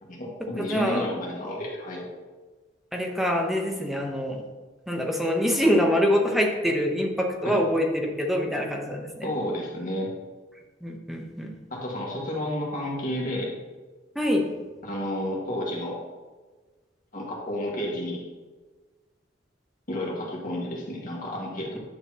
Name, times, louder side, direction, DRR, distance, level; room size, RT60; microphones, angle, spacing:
voice 1, 0.0-2.1 7.4-7.6 9.2-10.1 11.7-13.5 14.8-16.0 17.1-18.3 19.9-21.8, left 1 dB, 50° left, -3 dB, 1.9 m, -31 dB
voice 2, 0.6-1.1 2.9-4.4 4.9-9.3 10.8-11.5 14.1-14.5, equal, ahead, 1 dB, 1.0 m, -25 dB
9.9 x 6.6 x 3.0 m, 1.3 s
head